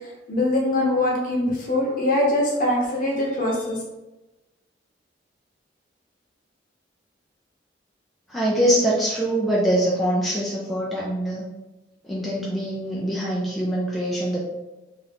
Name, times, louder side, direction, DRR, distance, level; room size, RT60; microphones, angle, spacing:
voice 1, 0.3-3.8, left 1 dB, 45° left, -3 dB, 0.8 m, -22 dB
voice 2, 8.3-11.5 12.0-14.4, right 1 dB, ahead, -6 dB, 0.3 m, -23 dB
2.7 x 2.4 x 3.3 m, 1.1 s
head